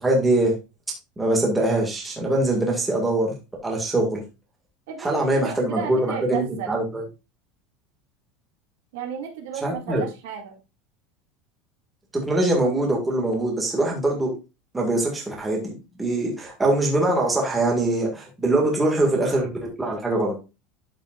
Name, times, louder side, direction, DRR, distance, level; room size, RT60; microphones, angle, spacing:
voice 1, 0.0-0.5 1.2-3.4 3.6-4.2 5.0-7.0 9.6-10.0 12.1-14.3 14.7-20.3, right 2 dB, 5° right, -1 dB, 1.8 m, -23 dB
voice 2, 4.9-6.7 8.9-10.5 18.5-18.7, right 7 dB, 75° right, 3 dB, 2.2 m, -33 dB
11.5 x 5.6 x 2.4 m, 0.28 s
cardioid pair, 175°, 0 cm